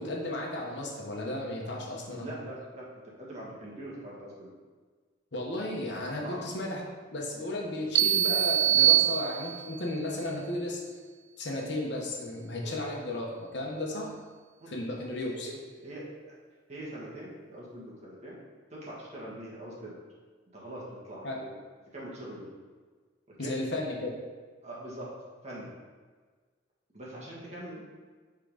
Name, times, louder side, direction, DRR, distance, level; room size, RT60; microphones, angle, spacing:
voice 1, 0.0-2.3 5.3-10.8 11.4-14.1 14.7-15.5 21.2-21.4 23.4-24.1, left 1 dB, 60° left, -1 dB, 1.0 m, -34 dB
voice 2, 2.2-2.8 3.2-4.5 6.2-6.4 12.6-12.8 14.6-14.7 15.2-15.5 15.8-16.3 16.7-18.4 18.7-19.9 20.5-21.5 21.9-22.5 23.4-23.5 24.6-25.0 25.4-25.7 26.9-27.8, right 1 dB, 35° right, -6 dB, 1.6 m, -42 dB
sound 1, 7.9-9.8, right 12 dB, 85° right, 0.3 m, -23 dB
5.7 x 3.8 x 5.0 m, 1.5 s
head